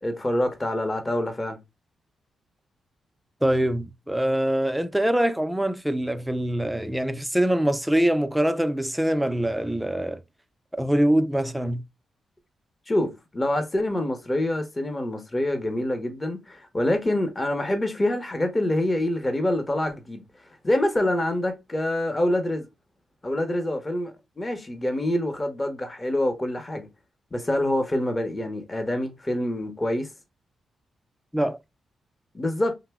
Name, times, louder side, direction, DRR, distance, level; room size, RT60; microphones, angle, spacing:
voice 1, 0.0-1.6 12.9-20.2 20.6-22.7 23.2-26.9 27.3-30.1 32.3-32.7, left 1 dB, 25° left, 0.7 m, -26 dB
voice 2, 3.4-10.2 10.7-11.8 31.3-31.6, right 1 dB, 5° right, 0.4 m, -24 dB
2.8 x 2.0 x 3.4 m
cardioid pair, 70°, 0 cm